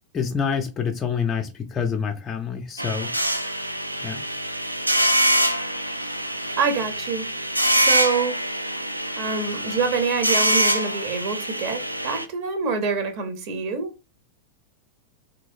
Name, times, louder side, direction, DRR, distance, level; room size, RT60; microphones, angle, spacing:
voice 1, 0.1-3.1 4.0-4.2, left 6 dB, 20° left, 0.4 m, -27 dB
sound 1, 2.8-12.3, right 1 dB, 90° right, 0.3 m, -24 dB
voice 2, 6.6-7.3 7.7-8.4 9.2-13.9, right 5 dB, 45° right, 0.7 m, -26 dB
3.0 x 2.7 x 2.6 m
figure-of-eight pair, 90°, 0 cm